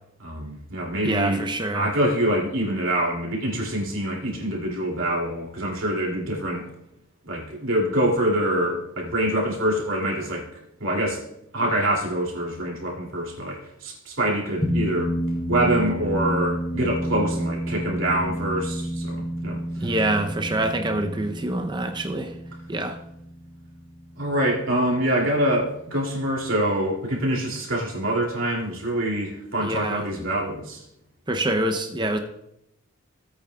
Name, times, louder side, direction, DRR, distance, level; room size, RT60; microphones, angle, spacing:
voice 1, 0.2-1.4 1.7-6.7 7.2-10.5 10.8-11.2 11.5-15.1 15.5-19.6 24.2-30.8, right 1 dB, 65° right, -2 dB, 2.7 m, -25 dB
voice 2, 1.0-1.9 19.8-22.3 22.7-23.0 29.6-30.1 31.3-32.2, right 1 dB, 20° right, 5 dB, 0.6 m, -25 dB
sound 1, 14.6-25.3, equal, 20° left, 2.9 m, -30 dB
17.0 x 8.6 x 2.3 m, 0.79 s
head